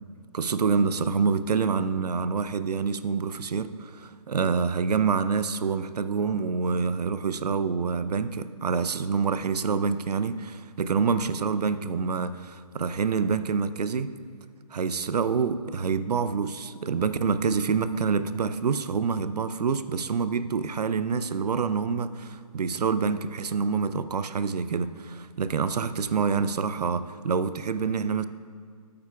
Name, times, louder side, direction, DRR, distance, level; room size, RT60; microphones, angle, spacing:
voice 1, 0.3-14.1 14.7-28.2, right 5 dB, 90° right, 12 dB, 0.5 m, -27 dB
13.5 x 8.6 x 2.3 m, 2.1 s
hypercardioid pair, 150°, 20 cm